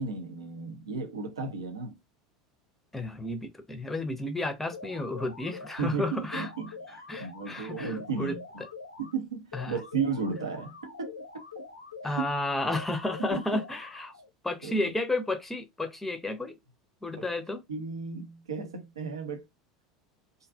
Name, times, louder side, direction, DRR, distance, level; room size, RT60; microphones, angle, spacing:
voice 1, 0.0-2.0 5.8-8.6 9.0-11.1 11.5-11.6 12.0-12.3 13.2-13.6 14.6-14.9 17.2-17.3 17.7-19.4, right 5 dB, 75° right, 0.7 m, -34 dB
voice 2, 2.9-6.5 7.1-8.3 9.5-9.8 12.0-14.1 14.4-16.5 17.0-17.6, left 2 dB, 10° left, 0.6 m, -32 dB
sound 1, 4.7-5.9 6.3-9.1 9.5-12.3 12.7-14.3, left 4 dB, 80° left, 0.6 m, -45 dB
2.5 x 2.3 x 2.4 m
figure-of-eight pair, 75°, 3 cm